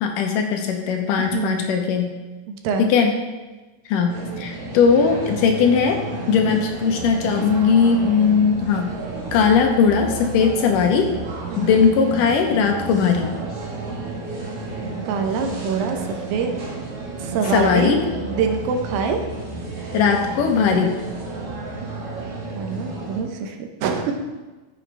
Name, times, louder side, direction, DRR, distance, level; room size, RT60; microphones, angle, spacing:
voice 1, 0.0-2.2 2.8-3.2 3.9-9.0 9.3-11.1 11.6-13.3 17.5-18.0 19.9-21.0, left 6 dB, 75° left, 4 dB, 2.2 m, -19 dB
voice 2, 1.2-1.6 2.5-2.9 11.5-11.8 15.1-16.5 17.2-19.2 22.6-24.3, right 5 dB, 80° right, 4 dB, 2.6 m, -25 dB
sound 1, 4.1-23.2, right 3 dB, 50° right, 2.0 m, -32 dB
13.5 x 7.0 x 3.3 m, 1.2 s
omnidirectional pair, 4.1 m